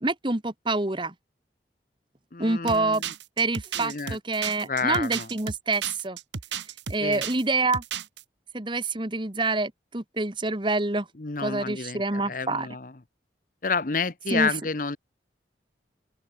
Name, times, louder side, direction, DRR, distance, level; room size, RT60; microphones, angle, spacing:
voice 1, 0.0-1.1 2.4-3.0 3.4-6.2 6.9-7.8 8.5-11.1 11.4-12.7 14.3-14.5, right 3 dB, 25° right, 1.5 m, -27 dB
voice 2, 2.3-3.0 3.8-4.2 4.6-5.3 7.0-7.2 11.2-12.9 13.6-15.0, left 5 dB, 50° left, 1.0 m, -29 dB
sound 1, 2.7-7.4 7.7-8.2, right 7 dB, 85° right, 1.2 m, -34 dB
open air
head